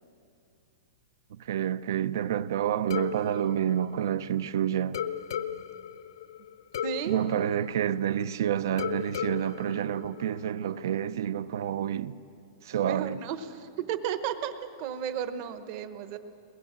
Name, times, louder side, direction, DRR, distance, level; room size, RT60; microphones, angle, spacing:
voice 1, 1.3-5.0 7.1-12.2 12.6-13.2, right 10 dB, 55° right, 0.6 m, -29 dB
sound 1, 2.9-4.5 4.9-8.3 8.8-10.7, left 9 dB, 70° left, 0.8 m, -37 dB
voice 2, 6.8-7.2 12.8-14.5 14.8-16.2, right 9 dB, 30° right, 1.0 m, -33 dB
22.0 x 20.0 x 7.4 m
supercardioid pair, 180°, 2 cm